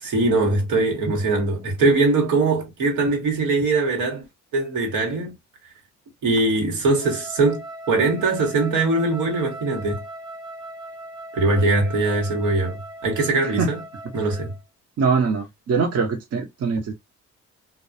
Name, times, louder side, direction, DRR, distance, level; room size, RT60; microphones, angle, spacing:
voice 1, 0.0-4.2 4.5-5.3 6.2-10.0 11.3-13.8 14.1-14.5, right 3 dB, 85° right, 1.1 m, -21 dB
Wind instrument woodwind instrument, 7.0-14.6, right 1 dB, 15° right, 0.5 m, -39 dB
voice 2, 15.0-16.9, right 5 dB, 55° right, 0.8 m, -22 dB
2.2 x 2.2 x 2.6 m
cardioid pair, 90°, 30 cm